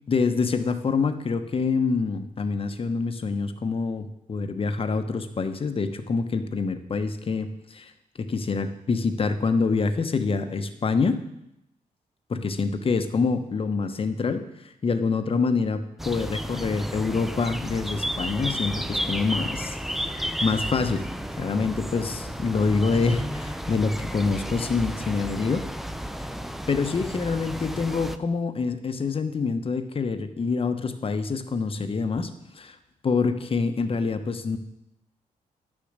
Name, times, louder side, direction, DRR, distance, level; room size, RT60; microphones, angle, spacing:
voice 1, 0.1-7.9 8.2-11.2 12.3-14.4 14.8-19.8 20.0-21.1 21.4-25.6 26.7-32.8 33.0-34.6, left 4 dB, 40° left, 8 dB, 1.1 m, -26 dB
sound 1, 16.0-28.2, equal, ahead, 0.6 m, -32 dB
10.5 x 7.0 x 6.6 m, 0.82 s
cardioid pair, 95°, 14 cm